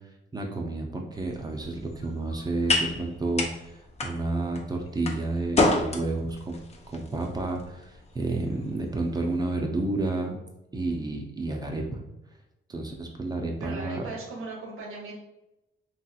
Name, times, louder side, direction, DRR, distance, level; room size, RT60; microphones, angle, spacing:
voice 1, 0.3-3.7 4.0-6.6 6.9-10.4 10.7-12.0 12.7-14.0, right 2 dB, 20° right, 2 dB, 0.5 m, -30 dB
sound 1, 1.1-9.5, left 2 dB, 30° left, 0.5 m, -31 dB
voice 2, 13.6-15.1, right 3 dB, 80° right, -3 dB, 0.9 m, -38 dB
3.0 x 2.8 x 2.3 m, 0.91 s
cardioid pair, 95°, 21 cm